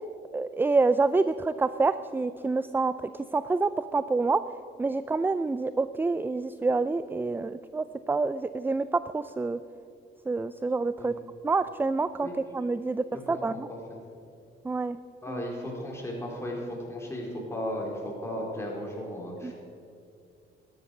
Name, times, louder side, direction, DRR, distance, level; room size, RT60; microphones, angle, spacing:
voice 1, 0.3-2.9 3.3-4.4 4.8-9.6 10.3-11.1 11.4-12.3 12.5-13.7 14.6-15.0 15.3-15.4 19.4-19.5, right 3 dB, 10° right, 14 dB, 0.3 m, -27 dB
voice 2, 13.3-13.8 15.2-19.5, equal, 15° left, -2 dB, 4.2 m, -35 dB
13.5 x 11.0 x 6.5 m, 2.5 s
cardioid pair, 90°, 20 cm